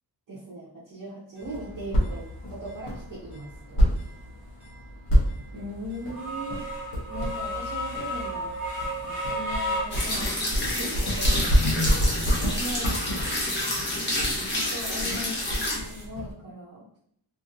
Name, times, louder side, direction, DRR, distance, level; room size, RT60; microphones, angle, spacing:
voice 1, 0.3-4.0 5.5-6.6 7.1-8.5 9.0-10.4 10.7-11.9 12.4-13.0 13.3-13.6 14.5-16.9, equal, 45° right, -8 dB, 0.8 m, -39 dB
sound 1, 1.4-16.3, equal, 65° left, 0.8 m, -28 dB
sound 2, 1.4-1.5 2.0-2.1 2.7-2.8 3.3-3.5 4.0-4.1 4.6-4.8 5.3-5.4 5.9-10.7 11.1-12.0 12.4-13.3 13.7-14.8 15.0-16.0, equal, 5° right, 1.2 m, -35 dB
sound 3, 9.9-15.8, left 1 dB, 25° left, 0.7 m, -29 dB
2.6 x 2.6 x 2.6 m, 0.68 s
wide cardioid pair, 175°, 45 cm